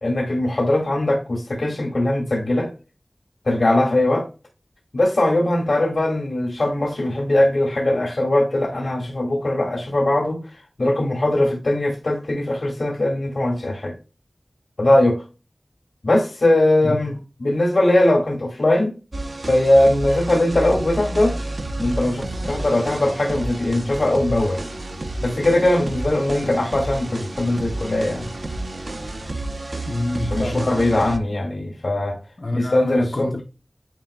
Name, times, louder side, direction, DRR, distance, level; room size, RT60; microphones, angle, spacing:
voice 1, 0.0-2.7 3.5-4.3 4.9-10.4 10.8-13.9 14.8-15.2 16.0-18.9 19.4-21.4 21.8-24.6 25.2-28.3 30.3-32.2 32.5-33.3, left 1 dB, 85° left, 1.8 m, -20 dB
sound 1, 19.1-31.2, right 2 dB, 70° right, 0.7 m, -30 dB
voice 2, 29.9-30.7 32.4-33.4, left 2 dB, 50° left, 0.6 m, -26 dB
9.3 x 4.5 x 2.2 m
wide cardioid pair, 45°, 0 cm